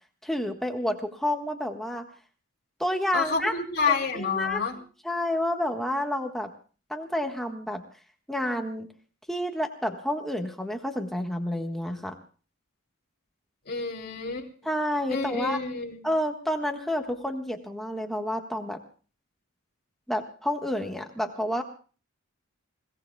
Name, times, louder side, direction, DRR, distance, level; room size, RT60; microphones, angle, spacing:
voice 1, 0.2-2.1 2.8-3.5 3.9-4.6 5.0-6.5 6.9-7.8 8.3-8.9 9.3-12.1 14.6-15.6 16.0-18.8 20.1-21.6, left 1 dB, ahead, 3 dB, 1.4 m, -29 dB
voice 2, 3.1-4.8 13.6-14.5 15.1-16.0, left 5 dB, 50° left, 0 dB, 3.2 m, -28 dB
29.0 x 17.5 x 2.3 m, 0.38 s
head